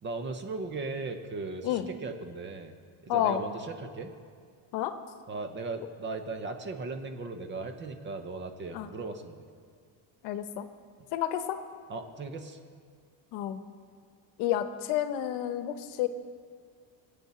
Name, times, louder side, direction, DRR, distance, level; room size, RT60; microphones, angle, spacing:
voice 1, 0.0-2.7 3.0-4.1 5.3-9.4 11.9-12.6, right 3 dB, 25° right, 7 dB, 0.7 m, -37 dB
voice 2, 3.1-3.4 4.7-4.9 8.7-8.9 10.2-10.6 11.1-11.6 13.3-13.6 14.4-16.1, left 11 dB, 65° left, 10 dB, 1.0 m, -30 dB
22.5 x 8.5 x 4.3 m, 2.1 s
cardioid pair, 170°, 44 cm